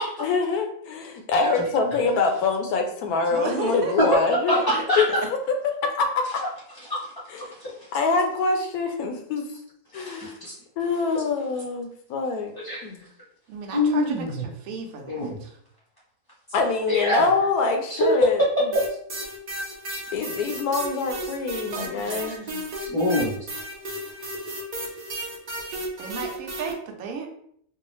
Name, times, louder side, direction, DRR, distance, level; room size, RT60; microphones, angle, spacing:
voice 1, 0.2-4.6 5.0-5.1 5.8-6.4 7.3-7.4 7.9-9.4 9.9-10.4 10.8-12.5 12.8-13.1 16.5-18.5 20.1-22.7, left 4 dB, 75° left, 4 dB, 1.0 m, -25 dB
voice 2, 3.3-3.9 4.5-4.6 5.1-5.2 13.5-15.5 21.7-22.2 26.0-27.3, right 5 dB, 70° right, 2 dB, 1.1 m, -34 dB
voice 3, 4.0-5.0 6.4-6.5 6.9-7.9 9.9-10.6 12.6-12.8 13.7-14.4 15.1-15.4 16.9-17.3 17.9-18.8 22.0-22.3 22.8-23.4, left 1 dB, 35° left, -7 dB, 0.4 m, -24 dB
sound 1, 18.7-26.7, right 1 dB, 90° right, 0.3 m, -34 dB
4.6 x 2.0 x 3.0 m, 0.67 s
omnidirectional pair, 1.7 m